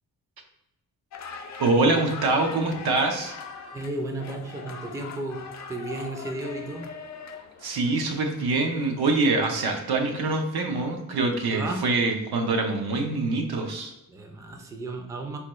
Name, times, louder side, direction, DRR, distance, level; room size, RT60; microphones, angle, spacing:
sound 1, 1.1-9.2, left 5 dB, 50° left, 0.5 m, -41 dB
voice 1, 1.6-3.4 7.6-13.9, right 3 dB, 85° right, 3 dB, 0.7 m, -24 dB
voice 2, 3.7-6.9 11.5-11.8 14.1-15.4, right 2 dB, 10° right, 3 dB, 0.3 m, -34 dB
4.3 x 2.2 x 3.0 m, 0.91 s
wide cardioid pair, 140°, 36 cm